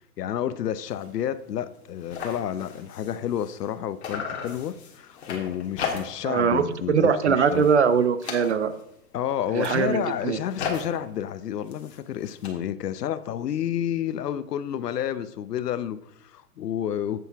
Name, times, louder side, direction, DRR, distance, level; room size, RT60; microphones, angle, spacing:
voice 1, 0.2-7.7 9.1-17.2, left 10 dB, 90° left, 0.8 m, -30 dB
sound 1, 0.9-1.1 1.5-1.6 1.8-3.7 4.0-6.4 6.7-7.1 7.4-8.9 9.4-12.5, left 6 dB, 45° left, 1.7 m, -36 dB
voice 2, 6.2-6.6 6.9-8.7 9.5-10.4, right 6 dB, 50° right, 0.5 m, -22 dB
9.1 x 8.1 x 3.5 m
hypercardioid pair, 180°, 46 cm